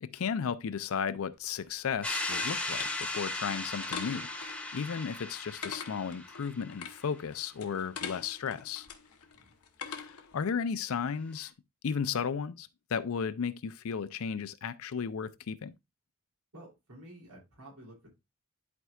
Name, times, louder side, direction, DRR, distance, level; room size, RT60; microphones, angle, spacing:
voice 1, 0.0-8.9 9.8-11.5 11.8-15.7, left 6 dB, 70° left, 0.4 m, -34 dB
sound 1, 1.4-10.4, left 6 dB, 90° left, 0.9 m, -45 dB
sound 2, 2.0-6.8, left 2 dB, 5° left, 0.7 m, -37 dB
voice 2, 16.5-18.1, right 1 dB, 85° right, 3.0 m, -51 dB
11.0 x 4.5 x 2.3 m
head